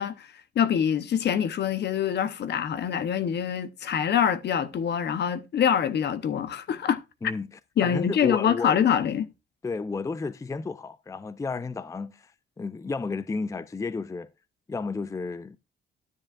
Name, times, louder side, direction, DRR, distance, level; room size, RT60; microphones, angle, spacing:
voice 1, 0.0-7.0 7.8-9.3, left 8 dB, 60° left, 0.9 m, -25 dB
voice 2, 7.8-8.9 9.6-12.3 12.6-14.3 14.7-15.6, left 4 dB, 15° left, 0.4 m, -32 dB
12.5 x 7.4 x 2.4 m
cardioid pair, 90°, 20 cm